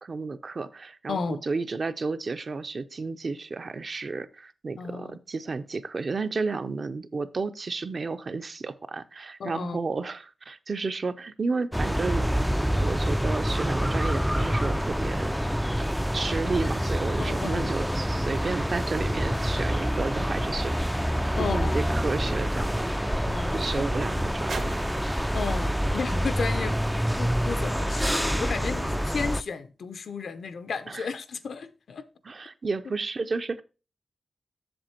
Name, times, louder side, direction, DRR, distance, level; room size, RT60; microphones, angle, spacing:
voice 1, 0.0-12.3 12.8-15.3 15.8-15.9 16.1-22.8 23.5-25.1 30.9-31.1 32.2-33.6, right 4 dB, 45° right, 0.6 m, -32 dB
voice 2, 1.1-1.4 4.8-5.2 9.4-9.8 17.2-17.7 21.3-21.8 23.2-23.6 25.3-26.9 27.2-32.0, left 5 dB, 75° left, 0.7 m, -33 dB
sound 1, 11.7-29.4, equal, ahead, 0.3 m, -27 dB
sound 2, 21.0-27.5 28.3-28.4, right 4 dB, 80° right, 1.8 m, -46 dB
7.8 x 7.1 x 4.3 m
wide cardioid pair, 130°, 0 cm